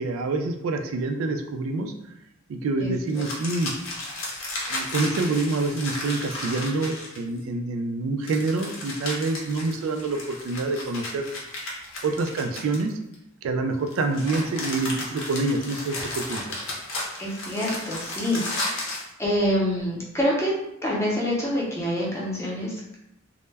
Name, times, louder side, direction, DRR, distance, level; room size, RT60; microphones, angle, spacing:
voice 1, 0.0-1.9 2.5-3.7 4.7-11.3 12.0-12.9 13.4-16.4, right 3 dB, 80° right, 5 dB, 0.3 m, -27 dB
sound 1, 3.1-7.4 8.2-13.1 13.9-19.1, left 2 dB, 75° left, 0.7 m, -34 dB
voice 2, 17.2-20.5 20.8-22.7, equal, 15° left, -4 dB, 0.6 m, -26 dB
2.1 x 2.1 x 3.3 m, 0.82 s
head